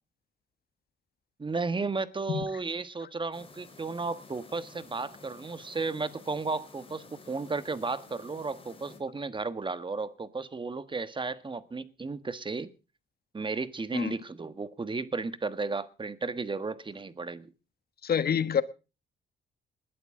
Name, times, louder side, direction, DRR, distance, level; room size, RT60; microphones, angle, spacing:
voice 1, 1.4-12.7 13.3-17.5, right 4 dB, 25° right, 1.4 m, -34 dB
sound 1, 3.3-9.0, left 3 dB, 25° left, 4.1 m, -52 dB
voice 2, 18.0-18.6, left 8 dB, 50° left, 1.3 m, -27 dB
20.5 x 12.0 x 3.7 m
cardioid pair, 90°, 20 cm